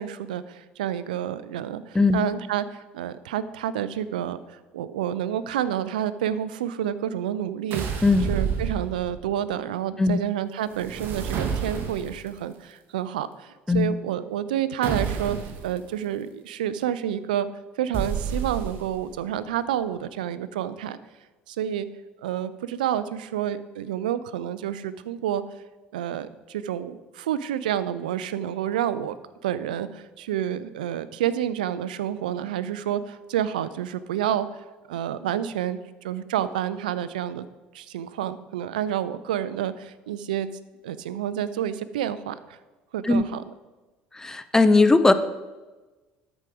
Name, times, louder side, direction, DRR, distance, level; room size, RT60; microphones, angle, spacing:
voice 1, 0.0-15.4 15.6-17.5 17.8-21.0 21.5-21.9 22.2-25.4 25.9-29.2 29.4-37.5 37.7-40.5 40.8-42.6 42.9-43.4, right 10 dB, 85° right, 15 dB, 0.4 m, -29 dB
voice 2, 1.9-2.3 8.0-8.3 10.0-10.2 13.7-13.9 43.0-43.2 44.1-45.1, left 3 dB, 10° left, 12 dB, 0.6 m, -19 dB
sound 1, 7.7-9.3 10.7-12.3 14.8-15.7 17.9-19.0, right 6 dB, 55° right, 1.2 m, -29 dB
12.5 x 4.9 x 5.0 m, 1.2 s
hypercardioid pair, 70°, 4 cm